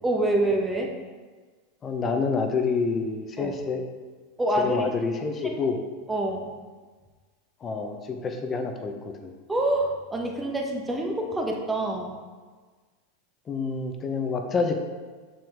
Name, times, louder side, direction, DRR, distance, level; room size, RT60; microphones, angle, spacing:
voice 1, 0.0-0.9 3.4-3.5 4.4-4.9 5.4-5.6 6.1-6.5 9.5-12.1, right 1 dB, 10° right, 1 dB, 1.2 m, -26 dB
voice 2, 1.8-3.8 4.6-5.8 7.6-9.3 13.5-14.8, left 4 dB, 30° left, 5 dB, 1.0 m, -28 dB
6.9 x 6.0 x 3.7 m, 1.4 s
hypercardioid pair, 95°, 0 cm